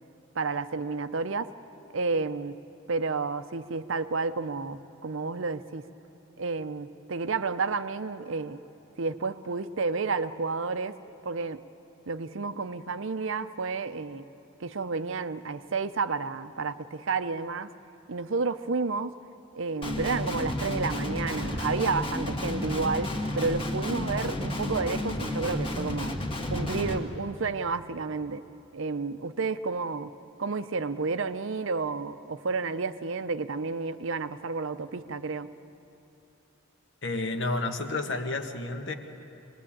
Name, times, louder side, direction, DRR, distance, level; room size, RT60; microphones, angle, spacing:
voice 1, 0.4-1.5 1.9-2.6 2.9-5.8 6.4-8.6 9.0-11.0 11.2-11.6 12.1-14.3 14.6-17.7 18.1-19.1 19.5-26.1 26.5-28.4 28.7-30.1 30.4-35.5, right 4 dB, 65° right, 12 dB, 0.6 m, -31 dB
Guitar, 19.8-27.0, left 1 dB, 25° left, 1.7 m, -31 dB
voice 2, 37.0-38.9, left 2 dB, 55° left, 5 dB, 1.5 m, -30 dB
25.0 x 20.0 x 8.7 m, 2.9 s
head